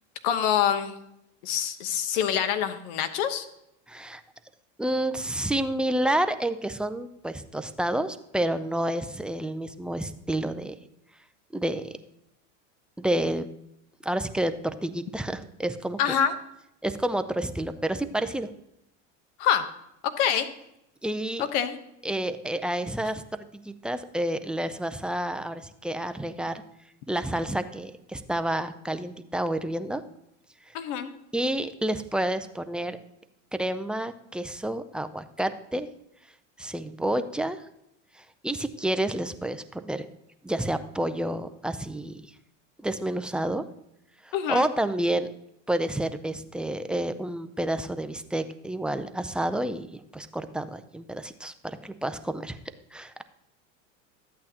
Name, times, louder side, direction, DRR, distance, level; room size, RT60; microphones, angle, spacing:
voice 1, 0.2-1.0 1.4-3.4 16.0-16.3 19.4-19.6 20.2-20.5 21.4-21.8 30.7-31.1 44.3-44.6, left 9 dB, 70° left, 10 dB, 1.1 m, -25 dB
voice 2, 3.9-4.2 4.8-10.8 11.5-12.0 13.0-13.5 14.0-16.1 16.8-18.5 21.0-21.5 22.0-26.6 27.1-30.0 30.7-30.8 31.3-33.0 33.5-35.9 36.6-37.6 38.2-40.1 40.4-42.3 42.8-43.7 44.2-45.3 45.7-52.6 52.9-53.2, right 1 dB, 5° right, 9 dB, 0.3 m, -29 dB
12.0 x 8.5 x 2.8 m, 0.81 s
supercardioid pair, 100°, 39 cm